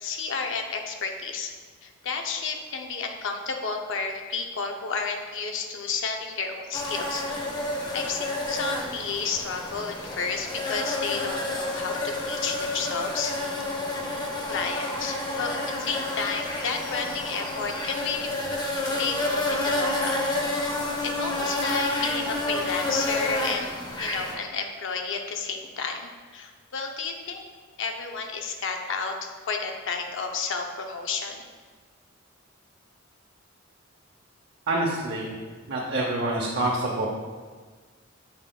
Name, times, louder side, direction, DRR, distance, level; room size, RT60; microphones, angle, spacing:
voice 1, 0.0-1.5 1.8-7.5 7.9-13.6 14.5-18.3 19.0-20.2 21.0-27.4 27.8-31.4, left 5 dB, 65° left, 4 dB, 0.6 m, -31 dB
sound 1, 6.7-24.3, left 2 dB, 20° left, 0.7 m, -30 dB
voice 2, 34.7-35.4 35.7-37.1, right 2 dB, 55° right, -3 dB, 0.7 m, -26 dB
7.6 x 5.6 x 2.3 m, 1.5 s
head